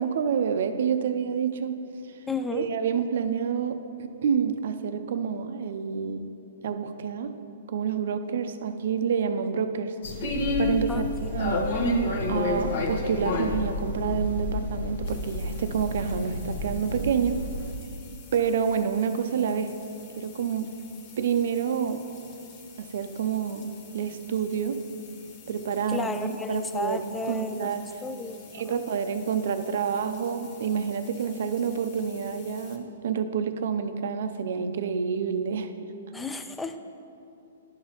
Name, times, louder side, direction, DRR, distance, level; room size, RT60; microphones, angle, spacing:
voice 1, 0.0-1.8 2.5-6.3 6.6-7.4 7.7-10.0 10.6-11.1 11.3-11.7 12.3-17.4 18.3-19.7 20.2-20.7 21.2-22.0 22.8-23.7 23.9-24.8 25.5-27.9 28.5-35.7, right 7 dB, 65° right, 9 dB, 0.5 m, -28 dB
voice 2, 2.3-2.7 10.9-11.4 25.9-28.8 36.1-36.8, left 3 dB, 10° left, 8 dB, 0.3 m, -33 dB
sound 1, 10.0-17.7, left 1 dB, 65° left, 1.0 m, -29 dB
sound 2, 15.0-32.8, left 5 dB, 40° left, 0.9 m, -51 dB
11.5 x 5.6 x 2.9 m, 2.7 s
hypercardioid pair, 140°, 0 cm